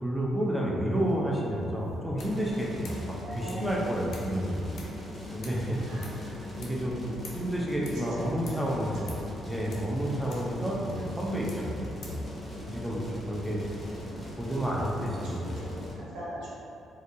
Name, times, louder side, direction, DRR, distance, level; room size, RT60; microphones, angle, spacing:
voice 1, 0.0-4.7 5.3-5.8 6.3-7.0 7.3-9.0 9.4-12.2 12.7-13.0 13.2-13.6 14.1-15.5, equal, 5° right, -4 dB, 0.4 m, -30 dB
sound 1, 0.9-15.5, left 3 dB, 75° left, 0.4 m, -53 dB
sound 2, 2.2-15.9, left 1 dB, 15° left, 1.0 m, -41 dB
voice 2, 3.1-4.8 5.8-6.2 7.7-9.1 9.4-9.6 10.1-10.4 12.9-13.3 14.9-16.6, right 1 dB, 85° right, -9 dB, 0.9 m, -42 dB
2.7 x 2.2 x 2.5 m, 2.6 s
cardioid pair, 90°, 0 cm